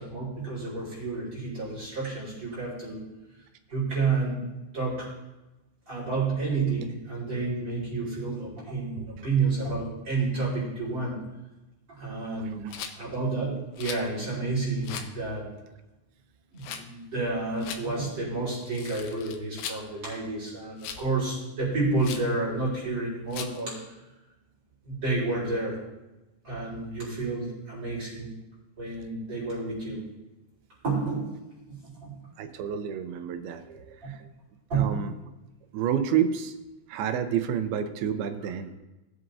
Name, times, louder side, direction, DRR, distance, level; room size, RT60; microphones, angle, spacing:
voice 1, 0.0-3.0 3.7-4.4 4.7-5.1 5.9-11.2 11.9-12.6 12.9-15.5 16.5-23.9 24.8-25.8 26.4-28.3 28.8-30.0 30.8-31.2 31.7-32.2 34.0-34.1 34.7-34.9, right 3 dB, 30° right, -8 dB, 5.0 m, -30 dB
Rattle, 12.7-13.0 13.8-14.1 14.8-15.1 16.6-16.8 17.6-17.8 18.7-19.8 20.8-21.1 22.0-22.3 23.3-23.6, left 7 dB, 85° left, 1.7 m, -38 dB
voice 2, 32.4-34.3 34.7-35.1 35.7-36.6 36.9-38.7, right 8 dB, 85° right, 8 dB, 2.7 m, -29 dB
19.0 x 7.7 x 2.7 m, 1.0 s
omnidirectional pair, 4.3 m